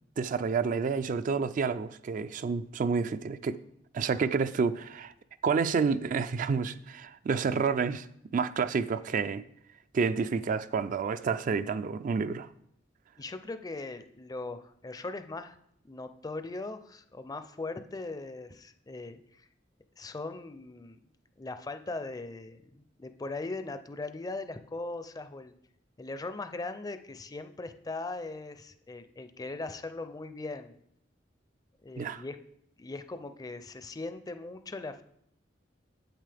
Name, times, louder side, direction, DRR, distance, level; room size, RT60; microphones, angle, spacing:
voice 1, 0.2-3.6 3.9-5.1 5.4-8.1 8.3-9.4 9.9-12.5 32.0-32.2, right 5 dB, 45° right, 0.3 m, -29 dB
voice 2, 13.2-15.6 15.8-19.5 20.0-21.0 21.4-25.5 26.0-30.7 31.8-32.4 32.8-35.0, left 3 dB, 20° left, 0.4 m, -39 dB
9.0 x 8.1 x 3.4 m
head